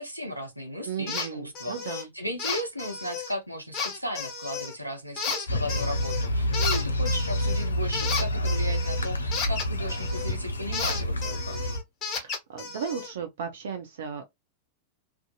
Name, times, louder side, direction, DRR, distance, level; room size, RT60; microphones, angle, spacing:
voice 1, 0.0-11.6, left 1 dB, 90° right, 0.7 m, -36 dB
voice 2, 0.9-2.1 12.2-14.2, right 7 dB, 60° right, 0.5 m, -35 dB
sound 1, 1.1-1.3 1.6-2.0 2.4-3.3 3.7-4.7 5.2-6.3 6.5-10.4 10.7-13.1, left 5 dB, 30° left, 1.2 m, -33 dB
sound 2, 5.5-11.8, equal, 75° left, 0.4 m, -28 dB
2.6 x 2.4 x 2.3 m
figure-of-eight pair, 90°, 0 cm